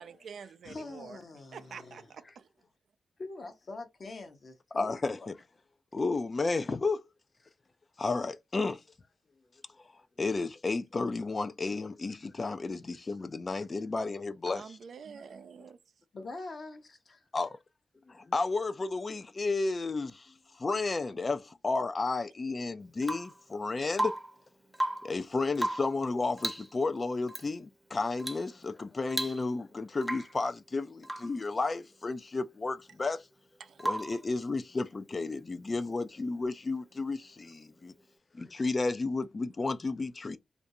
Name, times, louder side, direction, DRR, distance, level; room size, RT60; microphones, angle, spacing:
voice 1, 0.0-1.2 1.5-2.5 14.5-15.8 33.6-33.8, right 6 dB, 70° right, 0.4 m, -47 dB
voice 2, 0.6-2.0 3.2-5.3 16.1-17.2, left 3 dB, 60° left, 0.8 m, -44 dB
voice 3, 4.7-5.3 5.9-7.0 8.0-8.8 10.2-14.6 17.3-17.6 18.1-24.2 25.0-33.2 33.8-37.9 38.3-40.4, left 3 dB, 45° left, 0.4 m, -32 dB
Rain / Water tap faucet / Drip, 23.0-23.4 23.9-24.4 24.7-25.2 25.6-26.0 26.4-26.7 27.3-27.5 28.2-28.5 28.8-28.9 29.1-29.7 30.0-30.4 31.0-31.4 33.8-34.2 36.1-36.2, right 1 dB, 10° right, 0.7 m, -35 dB
2.5 x 2.2 x 2.8 m
supercardioid pair, 40°, 0 cm